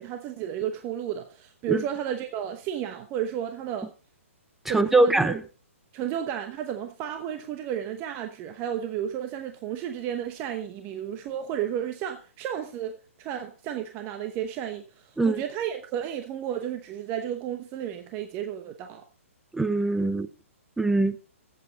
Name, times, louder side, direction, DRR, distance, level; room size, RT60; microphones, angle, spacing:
voice 1, 0.0-3.9 4.7-5.4 5.9-19.0, right 10 dB, 30° right, 1.0 m, -32 dB
voice 2, 4.7-5.4 15.2-15.4 19.5-20.3 20.8-21.2, right 2 dB, 5° right, 0.4 m, -22 dB
13.5 x 8.2 x 4.1 m
hypercardioid pair, 140°, 8 cm